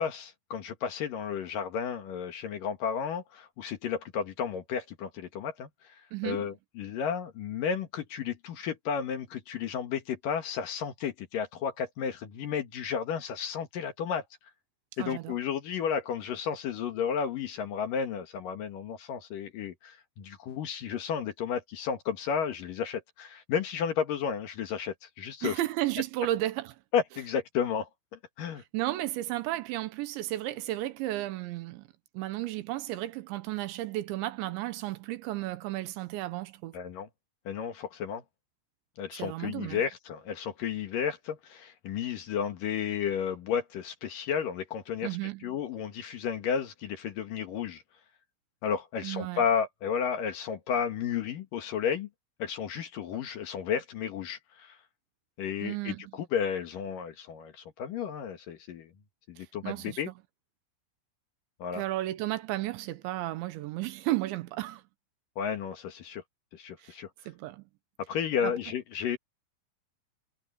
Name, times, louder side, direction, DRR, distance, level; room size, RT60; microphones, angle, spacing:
voice 1, 0.0-6.0 6.2-14.2 15.0-25.6 26.9-27.9 28.4-28.6 36.7-37.1 37.5-38.2 39.0-45.2 45.4-47.8 48.6-52.1 52.4-54.8 55.4-58.9 59.3-60.1 61.6-61.8 65.4-66.2 66.5-67.1 68.1-69.2, left 7 dB, 60° left, 2.5 m, -32 dB
voice 2, 6.1-6.5 15.0-15.3 25.4-26.7 28.7-31.9 32.1-36.8 39.2-39.8 45.0-45.6 49.0-49.4 55.6-56.0 59.4-60.1 61.7-64.8 66.8-66.9 67.3-67.6 68.4-68.5, right 16 dB, 75° right, 3.1 m, -33 dB
omnidirectional pair, 5.6 m